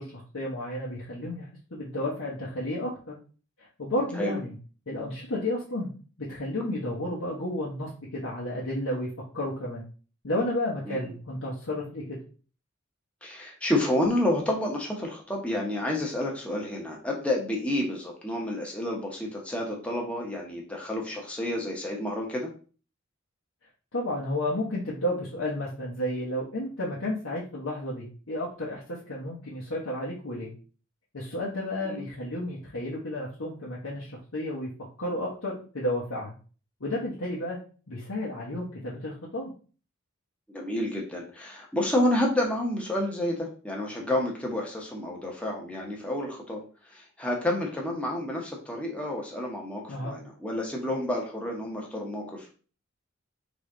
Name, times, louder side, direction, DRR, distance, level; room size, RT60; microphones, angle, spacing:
voice 1, 0.0-3.1 3.6-4.6 4.9-5.9 6.2-9.8 10.2-12.2 23.9-30.5 31.1-34.7 35.0-36.3 36.8-37.6 37.9-39.5 49.9-50.2, left 1 dB, 75° left, -5 dB, 1.1 m, -32 dB
voice 2, 13.2-22.5 31.9-32.1 40.5-46.6 46.9-52.5, left 1 dB, 5° left, -2 dB, 1.0 m, -29 dB
4.0 x 3.5 x 3.8 m, 0.38 s
head